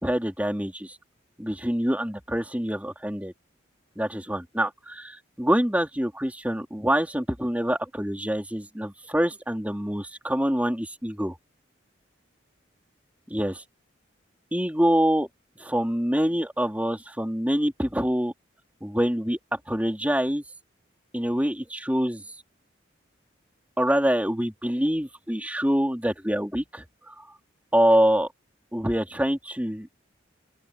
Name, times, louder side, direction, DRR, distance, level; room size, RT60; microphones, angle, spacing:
voice 1, 0.0-0.9 1.4-3.3 4.0-11.4 13.3-13.6 14.5-15.3 15.6-18.3 18.8-20.4 21.1-22.2 23.8-27.2 27.7-28.3 28.7-29.9, equal, 10° right, 3.1 m, -25 dB
open air
head